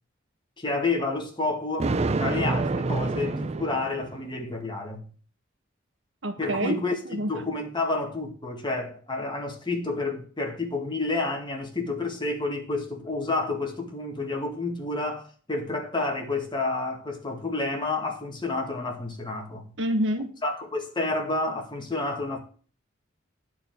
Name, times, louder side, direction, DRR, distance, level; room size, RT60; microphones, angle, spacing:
voice 1, 0.6-1.9 2.2-5.1 6.4-19.7 20.4-22.4, left 3 dB, 25° left, 1.9 m, -30 dB
Thunder, 1.8-4.3, right 3 dB, 30° right, 0.5 m, -27 dB
voice 2, 6.2-6.8 7.0-7.3 19.8-20.3, right 1 dB, 70° right, 1.4 m, -27 dB
9.6 x 4.6 x 7.8 m
head